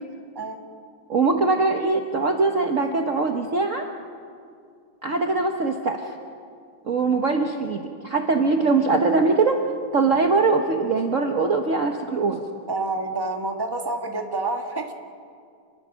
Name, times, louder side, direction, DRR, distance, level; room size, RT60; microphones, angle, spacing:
voice 1, 1.1-3.9 5.0-6.0 6.9-9.6 9.9-12.4, right 3 dB, 45° right, 3 dB, 1.3 m, -22 dB
voice 2, 12.7-14.9, right 3 dB, 10° right, 3 dB, 1.5 m, -28 dB
28.0 x 21.0 x 6.4 m, 2.3 s
omnidirectional pair, 2.3 m